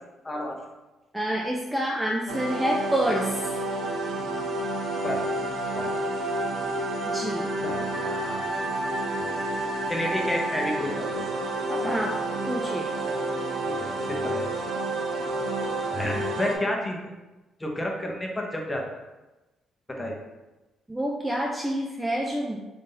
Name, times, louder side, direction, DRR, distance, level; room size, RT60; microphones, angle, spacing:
voice 1, 0.2-0.6 5.0-5.2 5.7-6.0 7.6-8.4 9.2-9.3 9.9-11.2 11.7-12.0 13.6-14.5 15.9-17.0 17.6-18.8 20.0-20.2, left 1 dB, 15° left, 0 dB, 0.8 m, -31 dB
voice 2, 1.1-3.4 7.1-7.5 11.8-12.1 12.5-12.9 20.9-22.6, right 1 dB, 10° right, -1 dB, 0.4 m, -27 dB
sound 1, 2.3-16.6, right 2 dB, 80° right, 0.7 m, -29 dB
3.8 x 2.6 x 3.9 m, 1.1 s
cardioid pair, 90°, 0 cm